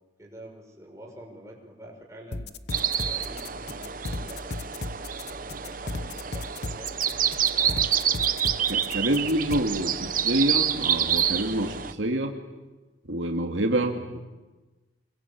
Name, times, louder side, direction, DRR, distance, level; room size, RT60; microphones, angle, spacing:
voice 1, 0.2-2.5 2.9-4.8 5.3-7.9 9.0-10.3, right 1 dB, 15° right, -1 dB, 6.0 m, -47 dB
sound 1, 2.3-9.6, left 2 dB, 60° left, 0.9 m, -35 dB
sound 2, 2.7-11.9, right 9 dB, 45° right, 0.9 m, -28 dB
voice 2, 8.7-12.3 13.1-14.2, right 1 dB, 85° right, 3 dB, 2.3 m, -27 dB
26.0 x 22.5 x 8.5 m, 1.2 s
head